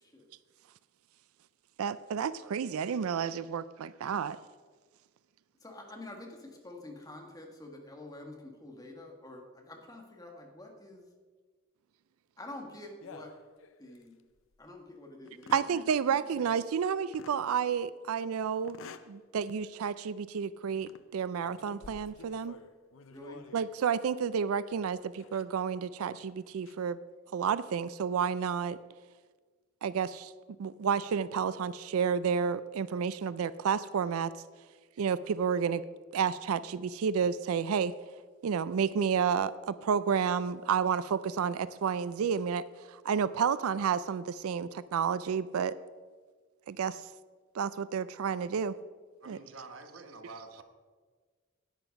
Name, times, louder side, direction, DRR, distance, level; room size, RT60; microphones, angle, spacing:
voice 1, 1.8-4.4 15.5-18.8 19.1-22.6 23.5-27.0 27.3-28.8 29.8-30.3 30.6-34.3 35.0-35.8 36.1-37.9 38.4-42.6 42.9-45.7 46.7-47.0 47.5-48.8 49.3-49.4, right 7 dB, 90° right, 16 dB, 0.4 m, -30 dB
voice 2, 5.6-11.0 12.4-13.3 13.8-14.1 14.6-16.2 23.1-23.4, left 1 dB, 15° left, 2 dB, 1.6 m, -47 dB
sound 1, 13.0-14.1 14.5-14.6 15.2-15.8 17.1-17.4 18.6-19.2 19.6-19.8 20.7-21.1 21.4-23.7 25.2-25.4 26.4-26.7, left 5 dB, 65° left, 0.6 m, -51 dB
voice 3, 49.2-50.6, right 3 dB, 65° right, 6 dB, 1.2 m, -47 dB
10.5 x 9.0 x 5.2 m, 1.4 s
head